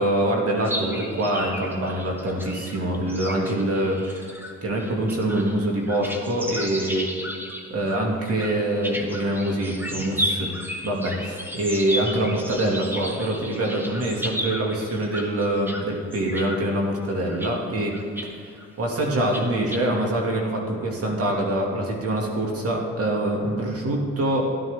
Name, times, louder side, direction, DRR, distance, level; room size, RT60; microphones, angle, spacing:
voice 1, 0.0-4.3 4.6-7.1 7.7-10.5 10.8-18.0 18.8-24.5, right 1 dB, 50° right, -1 dB, 2.4 m, -25 dB
sound 1, 0.6-15.8 16.1-16.6 17.2-17.5 17.9-18.3 18.6-18.7 19.2-19.8, equal, 5° right, 1.4 m, -34 dB
13.5 x 11.5 x 3.6 m, 2.4 s
cardioid pair, 90°, 30 cm